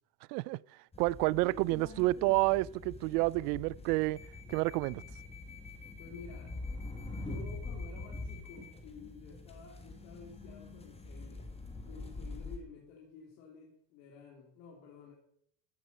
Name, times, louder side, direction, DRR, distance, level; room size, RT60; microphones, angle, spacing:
voice 1, 0.3-0.6 1.0-4.2 4.5-5.0, right 20 dB, 80° right, 0.5 m, -29 dB
sound 1, 0.9-12.6, left 2 dB, 15° left, 1.8 m, -44 dB
voice 2, 6.0-6.6 7.1-11.5 11.8-15.1, left 5 dB, 80° left, 3.2 m, -52 dB
15.0 x 8.2 x 5.5 m
cardioid pair, 135°, 47 cm